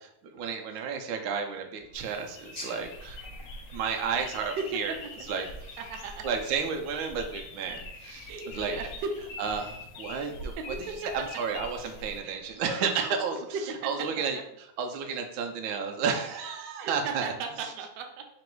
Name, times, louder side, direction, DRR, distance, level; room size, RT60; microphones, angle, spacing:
voice 1, 0.0-3.2 3.7-4.9 5.3-5.5 6.2-8.8 9.4-13.4 13.8-14.4 14.8-17.3, right 6 dB, 90° right, 4 dB, 1.4 m, -32 dB
sound 1, 1.8-12.7, left 2 dB, 70° left, 0.7 m, -44 dB
sound 2, 1.9-12.2, left 1 dB, 30° left, 0.8 m, -51 dB
voice 2, 4.2-5.1 5.8-6.3 8.3-9.1 10.6-11.1 12.2-14.4 16.8-18.3, right 4 dB, 70° right, 4 dB, 1.2 m, -37 dB
3.9 x 3.0 x 4.5 m, 0.77 s
omnidirectional pair, 2.2 m